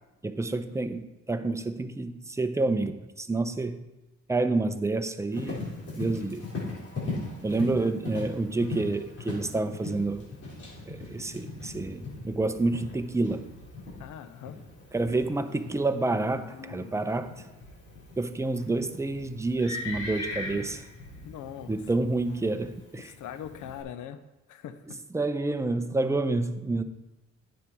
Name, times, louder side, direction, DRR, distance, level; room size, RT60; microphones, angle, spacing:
voice 1, 0.2-3.9 4.3-5.6 5.9-6.5 7.4-10.3 10.9-13.4 14.9-17.3 18.2-20.8 21.7-23.1 25.1-26.8, right 2 dB, 10° right, 9 dB, 0.7 m, -28 dB
Livestock farm animals working animals, 5.3-23.8, left 3 dB, 50° left, 3.9 m, -40 dB
voice 2, 7.6-7.9 14.0-14.6 21.2-21.8 23.0-24.2 24.5-25.0, left 9 dB, 80° left, 11 dB, 0.8 m, -41 dB
9.7 x 7.4 x 4.6 m, 1.0 s
cardioid pair, 90°, 30 cm